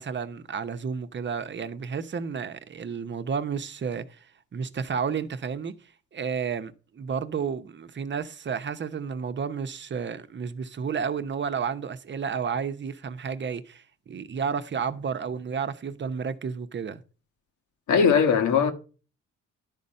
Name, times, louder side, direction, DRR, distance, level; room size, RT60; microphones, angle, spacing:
voice 1, 0.0-4.2 4.5-5.7 6.1-17.0, right 6 dB, 40° right, 0.9 m, -31 dB
voice 2, 17.9-18.7, left 6 dB, 75° left, 1.5 m, -19 dB
11.5 x 4.2 x 5.2 m
cardioid pair, 90°, 30 cm